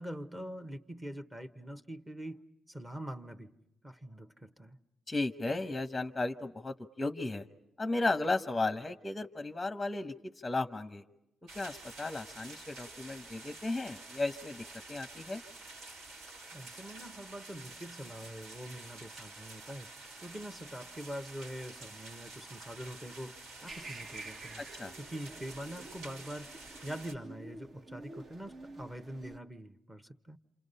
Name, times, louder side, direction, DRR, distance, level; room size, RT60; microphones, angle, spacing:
voice 1, 0.0-2.4 2.7-3.6 3.8-4.8 16.5-19.9 20.2-24.7 25.0-26.5 26.8-30.4, equal, 15° right, 1.2 m, -44 dB
voice 2, 5.1-7.5 7.8-11.0 11.5-15.4 24.8-24.9, left 2 dB, 15° left, 0.9 m, -35 dB
sound 1, 11.5-27.2, right 2 dB, 85° right, 4.1 m, -49 dB
sound 2, 23.7-29.4, right 2 dB, 45° right, 1.1 m, -49 dB
28.0 x 27.5 x 5.5 m
cardioid pair, 90°, 0 cm